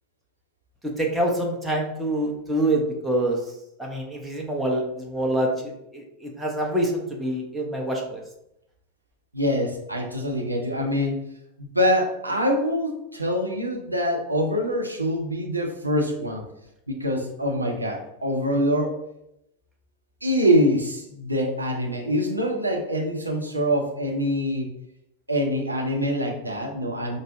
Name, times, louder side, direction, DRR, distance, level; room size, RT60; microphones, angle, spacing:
voice 1, 0.8-3.4 3.8-8.2, right 1 dB, 5° right, -1 dB, 0.9 m, -26 dB
voice 2, 9.3-11.2 11.6-16.4 16.9-19.0 20.2-24.7 25.3-27.2, equal, 85° right, 0 dB, 0.7 m, -24 dB
5.2 x 2.1 x 3.7 m, 0.82 s
figure-of-eight pair, 90°, 0 cm